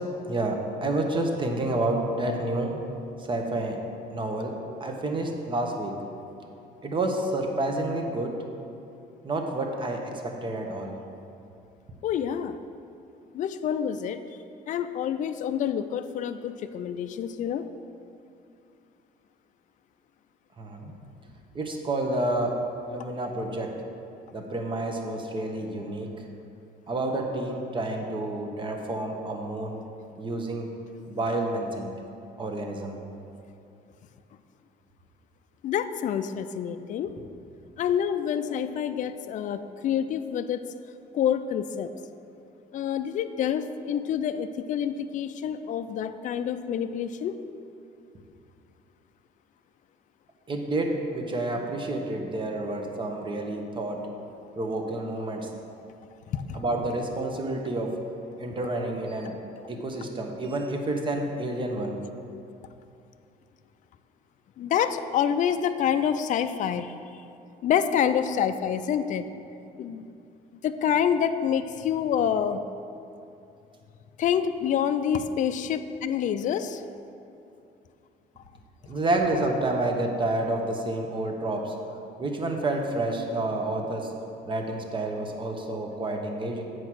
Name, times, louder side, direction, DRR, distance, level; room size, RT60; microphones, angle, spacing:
voice 1, 0.3-2.8 3.2-3.8 4.1-6.0 6.8-8.3 9.2-11.0 20.6-20.9 21.5-22.6 22.9-23.8 24.3-26.1 26.9-29.8 30.2-30.7 31.1-31.9 32.4-33.0 50.5-54.1 54.6-55.5 56.5-58.0 58.4-59.3 59.7-62.0 78.8-81.7 82.2-84.1 84.5-86.6, right 2 dB, 30° right, 3 dB, 1.0 m, -29 dB
voice 2, 12.0-12.6 13.3-14.2 14.7-17.7 35.6-37.1 37.8-40.6 41.1-41.9 42.7-47.3 56.3-56.6 64.6-66.9 67.6-69.3 69.8-70.0 70.6-72.6 74.2-76.8, left 8 dB, 50° left, 10 dB, 0.4 m, -27 dB
7.8 x 4.7 x 6.1 m, 2.6 s
cardioid pair, 110°, 17 cm